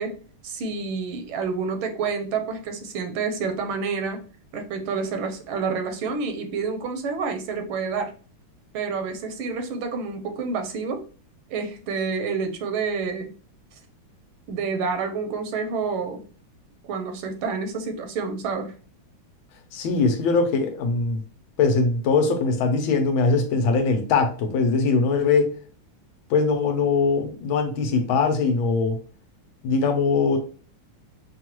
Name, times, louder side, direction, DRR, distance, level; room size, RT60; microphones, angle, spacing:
voice 1, 0.0-4.2 4.5-8.1 8.7-11.0 11.5-13.3 14.5-16.2 16.8-18.7, right 5 dB, 80° right, 6 dB, 1.6 m, -28 dB
voice 2, 19.7-21.2 21.6-25.5 26.3-29.0 29.6-30.4, left 4 dB, 75° left, 6 dB, 1.5 m, -21 dB
6.0 x 2.3 x 3.0 m, 0.39 s
omnidirectional pair, 2.3 m